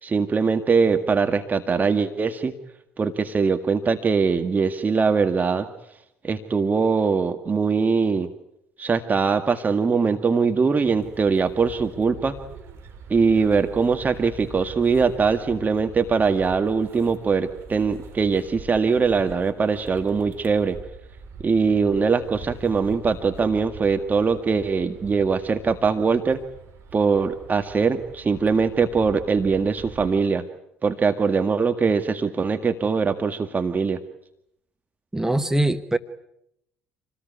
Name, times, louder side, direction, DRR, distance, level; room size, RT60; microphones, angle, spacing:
voice 1, 0.0-2.5 3.0-5.7 6.2-8.3 8.8-12.4 13.1-20.8 21.4-26.4 26.9-30.4 30.8-34.0, right 5 dB, 30° right, 7 dB, 1.9 m, -22 dB
sound 1, 10.8-30.1, right 4 dB, 50° right, 5.3 m, -43 dB
voice 2, 35.1-36.0, right 1 dB, 10° right, 10 dB, 1.3 m, -22 dB
28.0 x 19.0 x 9.6 m, 0.80 s
hypercardioid pair, 55°, 5 cm